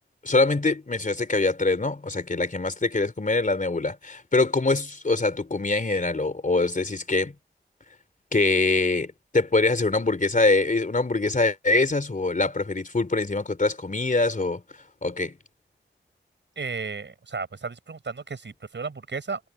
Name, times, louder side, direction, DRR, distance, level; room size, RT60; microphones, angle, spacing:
voice 1, 0.2-7.3 8.3-14.6 15.0-15.4, left 3 dB, 40° left, 3.5 m, -24 dB
voice 2, 16.6-19.4, right 4 dB, 65° right, 6.8 m, -34 dB
cardioid pair, 45°, 20 cm